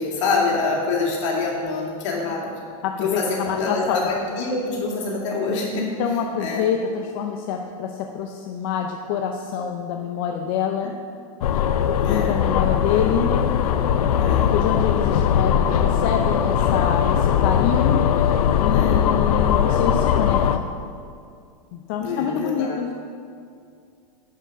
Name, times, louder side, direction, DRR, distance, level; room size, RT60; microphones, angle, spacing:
voice 1, 0.0-2.5 3.0-5.9 6.4-6.7 10.8-10.9 11.9-12.4 14.1-14.5 18.7-19.1 22.0-22.8, left 3 dB, 55° left, -3 dB, 2.4 m, -26 dB
voice 2, 2.8-4.0 5.8-10.9 12.1-13.3 14.4-18.0 18.6-20.6 21.7-22.9, left 8 dB, 40° left, 3 dB, 0.5 m, -26 dB
sound 1, 11.4-20.6, left 8 dB, 85° left, 0.6 m, -20 dB
10.0 x 4.9 x 6.7 m, 2.4 s
supercardioid pair, 170°, 19 cm